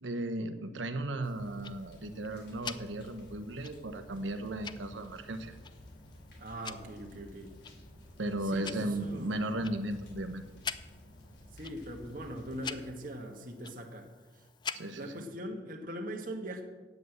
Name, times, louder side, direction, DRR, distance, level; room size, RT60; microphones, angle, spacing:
voice 1, 0.0-5.5 8.2-10.4 14.7-15.2, right 1 dB, 85° right, 8 dB, 0.9 m, -36 dB
Tick-tock, 1.2-15.2, left 6 dB, 25° left, 0.4 m, -47 dB
sound 1, 1.3-12.7, equal, 65° left, 3.2 m, -53 dB
voice 2, 6.4-7.5 8.4-9.3 11.5-14.1 14.3-14.4 15.0-16.6, equal, 45° right, 2 dB, 1.4 m, -41 dB
9.3 x 7.9 x 8.0 m, 1.3 s
head